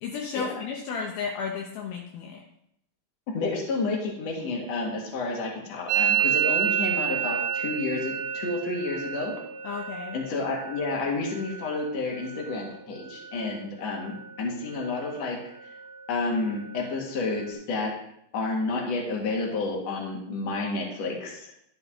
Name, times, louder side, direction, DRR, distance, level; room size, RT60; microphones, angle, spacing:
voice 1, 0.0-2.4 9.6-10.2 13.4-13.5, left 6 dB, 80° left, 0 dB, 2.1 m, -33 dB
voice 2, 3.3-9.4 10.1-15.4 16.1-17.9 18.3-21.5, left 3 dB, 50° left, -2 dB, 2.2 m, -30 dB
Musical instrument, 5.9-13.5 13.8-14.4 14.6-15.2 15.5-17.5, right 9 dB, 80° right, 2.6 m, -31 dB
11.5 x 7.0 x 3.7 m, 0.76 s
omnidirectional pair, 5.5 m